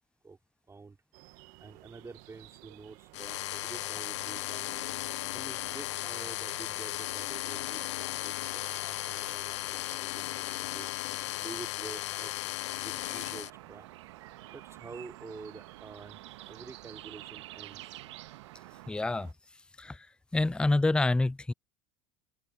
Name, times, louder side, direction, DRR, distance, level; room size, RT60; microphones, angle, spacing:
sound 1, 1.1-19.3, right 23 dB, 65° right, 1.5 m, -56 dB
voice 1, 1.6-4.9 5.3-10.9 11.4-12.4 12.8-13.9 14.5-16.2 16.5-17.9, right 4 dB, 20° right, 4.0 m, -48 dB
sound 2, 3.1-13.5, left 16 dB, 85° left, 0.5 m, -36 dB
sound 3, 12.9-18.9, right 15 dB, 85° right, 1.7 m, -49 dB
voice 2, 18.9-19.3 19.8-20.0 20.3-21.5, left 2 dB, 5° left, 0.4 m, -27 dB
hypercardioid pair, 85°, 15 cm